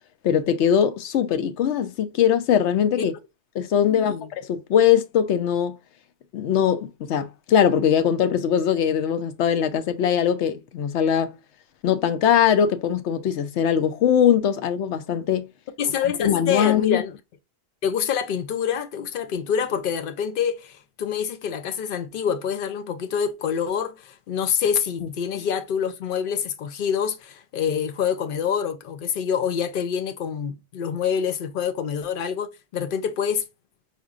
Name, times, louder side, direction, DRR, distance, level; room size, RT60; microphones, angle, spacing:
voice 1, 0.2-3.2 3.5-5.8 6.3-11.4 11.8-15.5 16.2-17.0, left 9 dB, 85° left, 0.9 m, -21 dB
voice 2, 3.9-4.3 15.8-17.2 17.8-33.4, left 7 dB, 60° left, 0.7 m, -26 dB
4.3 x 2.5 x 2.4 m
omnidirectional pair, 1.1 m